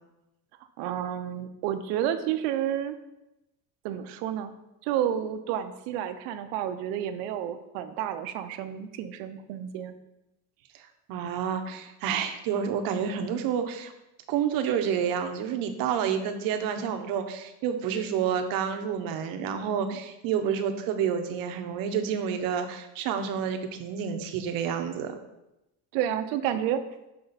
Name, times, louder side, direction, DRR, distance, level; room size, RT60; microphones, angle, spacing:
voice 1, 0.8-3.0 3.8-4.5 4.8-9.9 25.9-26.8, right 10 dB, 85° right, 10 dB, 0.7 m, -30 dB
voice 2, 11.1-13.9 14.3-25.2, right 7 dB, 55° right, 6 dB, 0.8 m, -29 dB
6.7 x 5.1 x 4.0 m, 0.94 s
cardioid pair, 180°, 42 cm